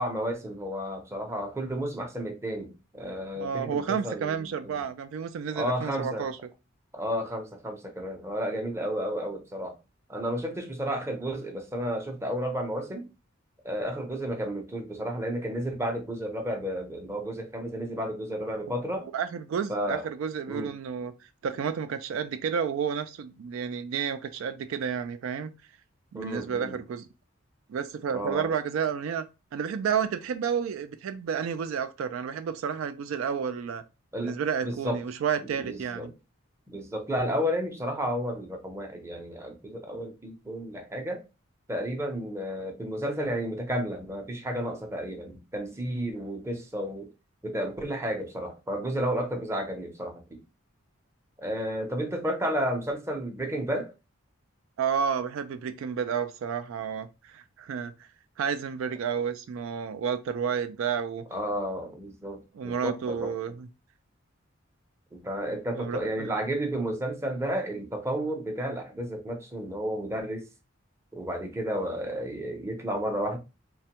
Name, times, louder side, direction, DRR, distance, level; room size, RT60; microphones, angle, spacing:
voice 1, 0.0-4.8 5.5-6.3 6.9-9.8 10.1-13.1 13.6-19.1 19.7-20.0 20.5-20.7 26.1-26.8 28.1-28.5 34.1-34.3 34.6-35.0 35.5-36.1 36.7-41.2 41.7-47.1 47.4-50.4 51.4-53.9 61.3-63.3 65.1-70.5 71.1-73.4, equal, 15° right, 0.5 m, -32 dB
voice 2, 3.4-6.4 19.0-21.1 21.4-25.5 26.1-27.1 27.7-29.3 29.5-33.8 34.2-36.1 54.8-57.9 58.4-61.3 62.5-63.7 65.7-66.3, right 7 dB, 75° right, 0.3 m, -31 dB
3.2 x 2.2 x 2.8 m
head